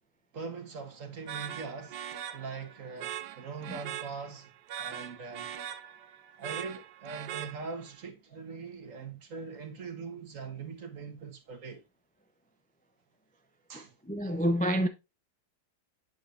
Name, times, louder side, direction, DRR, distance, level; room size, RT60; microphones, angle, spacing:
voice 1, 0.3-2.0 2.3-4.5 4.8-5.5 6.4-11.8 13.7-14.0, right 4 dB, 50° right, 1.6 m, -42 dB
sound 1, 1.3-8.0, right 10 dB, 90° right, 1.3 m, -41 dB
voice 2, 13.7-14.9, equal, 10° left, 0.3 m, -29 dB
8.2 x 6.6 x 2.5 m
omnidirectional pair, 1.8 m